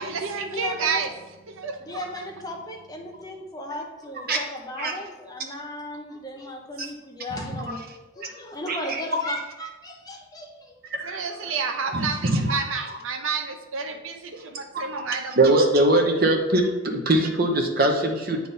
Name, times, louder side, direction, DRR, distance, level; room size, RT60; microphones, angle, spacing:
voice 1, 0.0-2.6 2.9-3.1 11.0-15.6, right 5 dB, 75° right, 6 dB, 0.6 m, -31 dB
voice 2, 0.5-1.0 1.9-7.9 8.1-10.8, left 1 dB, 20° left, 1 dB, 0.8 m, -36 dB
voice 3, 7.3-7.7 8.7-9.0 10.9-11.2 11.9-12.1 12.3-12.5 15.4-18.4, right 1 dB, 45° right, 3 dB, 0.9 m, -22 dB
8.8 x 3.6 x 4.2 m, 1.1 s
head